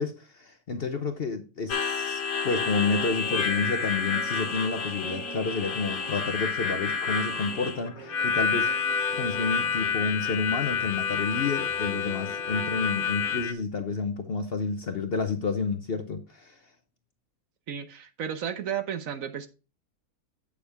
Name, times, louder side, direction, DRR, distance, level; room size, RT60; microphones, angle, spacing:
voice 1, 0.0-8.7 9.2-16.6, left 4 dB, 50° left, 0.8 m, -30 dB
Harmonica, 1.7-13.5, left 6 dB, 65° left, 1.4 m, -29 dB
sound 1, 2.4-13.5, right 4 dB, 40° right, 2.8 m, -46 dB
voice 2, 17.7-19.5, right 8 dB, 65° right, 1.1 m, -33 dB
8.6 x 6.7 x 3.4 m
omnidirectional pair, 1.6 m